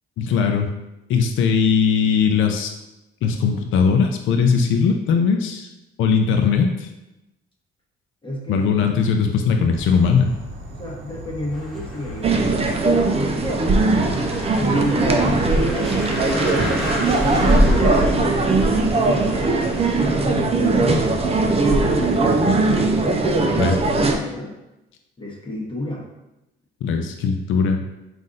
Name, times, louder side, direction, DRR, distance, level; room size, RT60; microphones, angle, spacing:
voice 1, 0.2-0.7 1.1-2.7 3.2-5.7 6.0-6.9 8.5-10.3 23.6-23.8 26.8-27.8, left 6 dB, 75° left, 4 dB, 0.5 m, -19 dB
voice 2, 8.2-8.7 10.7-13.4 14.6-16.9 17.2-18.0 18.4-19.4 20.0-24.6 25.2-26.1, left 1 dB, 25° left, -3 dB, 1.1 m, -32 dB
Insect / Frog, 9.7-22.9, right 1 dB, 70° right, 0.8 m, -36 dB
sound 1, 11.5-22.5, equal, ahead, 1.1 m, -28 dB
sound 2, 12.2-24.2, right 3 dB, 30° right, 0.5 m, -19 dB
4.0 x 2.6 x 3.8 m, 0.93 s
cardioid pair, 90°, 20 cm